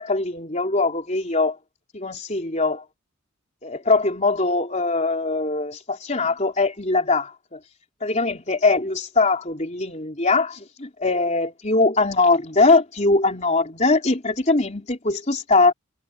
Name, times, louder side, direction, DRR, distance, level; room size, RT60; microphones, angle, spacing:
voice 1, 0.0-1.6 1.9-2.9 3.6-7.6 8.0-15.7, left 3 dB, 35° left, 3.7 m, -21 dB
head